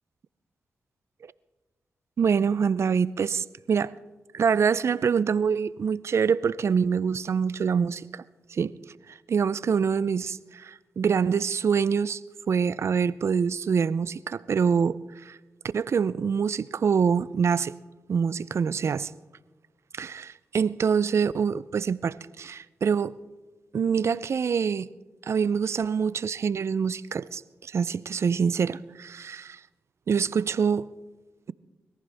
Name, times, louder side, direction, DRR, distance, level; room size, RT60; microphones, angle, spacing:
voice 1, 2.2-3.9 4.3-8.2 8.5-8.7 9.1-12.2 12.5-15.4 15.7-17.7 18.1-19.1 19.9-23.2 23.7-24.9 25.2-29.6 30.1-30.9, right 6 dB, 60° right, 0.5 m, -25 dB
21.5 x 14.5 x 3.4 m
supercardioid pair, 45°, 5 cm